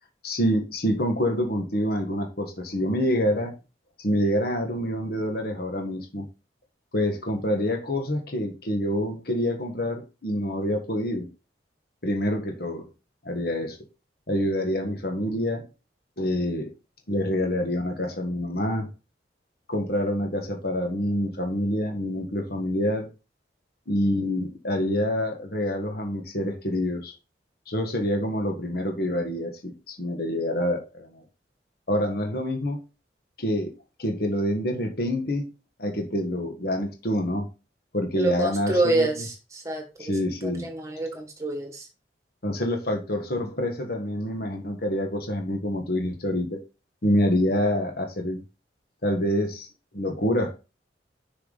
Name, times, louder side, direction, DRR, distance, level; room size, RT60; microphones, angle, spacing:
voice 1, 0.2-3.5 4.0-6.3 6.9-11.3 12.0-12.8 13.2-13.8 14.3-15.6 16.2-16.7 17.1-18.9 19.7-23.1 23.9-27.1 27.7-31.2 31.9-32.8 33.4-33.7 34.0-35.5 35.8-37.5 37.9-39.2 40.0-40.7 42.4-46.6 47.0-48.4 49.0-49.7 49.9-50.5, left 1 dB, 55° left, 1.5 m, -26 dB
voice 2, 38.2-39.2 39.5-40.1 40.4-41.9, right 2 dB, 15° right, 1.7 m, -27 dB
6.7 x 5.9 x 4.0 m
head